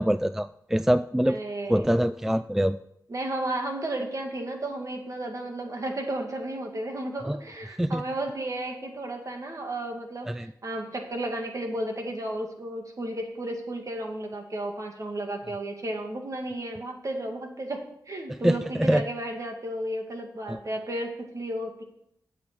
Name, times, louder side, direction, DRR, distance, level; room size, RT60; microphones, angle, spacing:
voice 1, 0.0-1.4 1.7-2.8 7.3-7.4 7.8-8.0 10.3-10.5 18.4-19.0 20.5-20.6, equal, 5° right, 13 dB, 0.4 m, -24 dB
voice 2, 1.3-1.9 3.1-21.8, right 1 dB, 50° right, 2 dB, 2.3 m, -33 dB
8.4 x 8.0 x 6.0 m, 0.74 s
cardioid pair, 55°, 7 cm